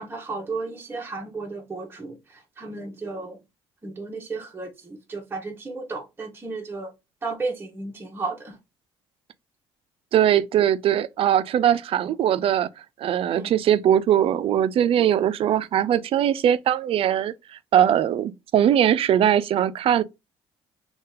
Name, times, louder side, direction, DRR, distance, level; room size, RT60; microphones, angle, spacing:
voice 1, 0.0-3.4 3.8-6.9 7.2-8.6 13.3-13.5, right 3 dB, 20° right, 0.8 m, -33 dB
voice 2, 10.1-12.7 13.0-17.3 17.7-20.0, right 10 dB, 55° right, 0.4 m, -20 dB
2.7 x 2.3 x 3.4 m
cardioid pair, 85°, 11 cm